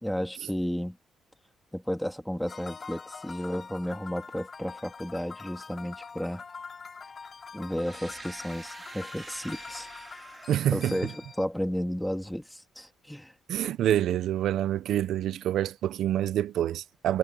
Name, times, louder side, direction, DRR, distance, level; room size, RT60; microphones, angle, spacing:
voice 1, 0.0-1.0 1.7-6.4 7.5-9.9 10.7-13.3, equal, 5° left, 2.6 m, -33 dB
sound 1, 2.5-11.4, left 5 dB, 40° left, 2.6 m, -44 dB
sound 2, 7.7-11.6, right 4 dB, 30° right, 2.4 m, -48 dB
voice 2, 10.5-10.9 13.5-17.2, right 11 dB, 75° right, 0.7 m, -27 dB
cardioid pair, 90°, 0 cm